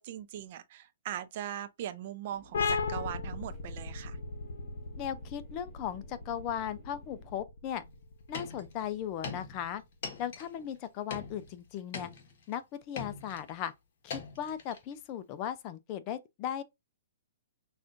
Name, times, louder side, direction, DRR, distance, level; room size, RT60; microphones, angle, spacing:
voice 1, 0.0-4.2, right 11 dB, 45° right, 0.5 m, -40 dB
sound 1, 2.3-7.4, equal, 15° right, 0.9 m, -59 dB
sound 2, 2.5-9.8, left 4 dB, 75° left, 0.8 m, -37 dB
voice 2, 5.0-7.8 8.3-9.8 10.2-12.1 12.5-13.7 14.0-16.6, left 9 dB, 30° left, 0.4 m, -37 dB
sound 3, 7.8-8.0 8.3-8.8 9.2-10.8 11.1-12.5 13.0-13.7 14.1-14.9 15.4-15.5, left 5 dB, 50° left, 1.3 m, -42 dB
5.9 x 2.4 x 2.6 m
hypercardioid pair, 150°, 0 cm